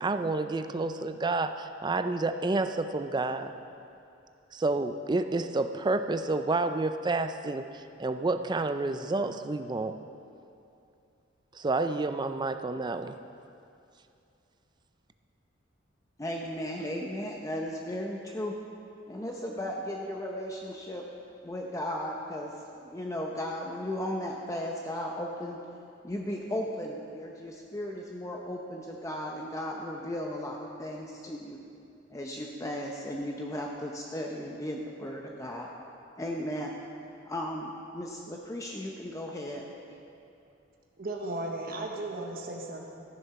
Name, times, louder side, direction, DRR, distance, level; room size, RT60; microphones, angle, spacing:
voice 1, 0.0-3.5 4.5-10.0 11.5-13.2, right 3 dB, 25° right, 9 dB, 0.4 m, -29 dB
voice 2, 16.2-18.5 19.1-21.1 21.4-22.5 22.8-25.6 26.0-31.6 32.1-35.7 36.2-36.8 37.2-39.7, left 1 dB, 15° left, 0 dB, 0.6 m, -36 dB
voice 3, 41.0-42.9, right 2 dB, 50° right, 0 dB, 1.0 m, -35 dB
14.0 x 7.1 x 5.8 m, 2.6 s
head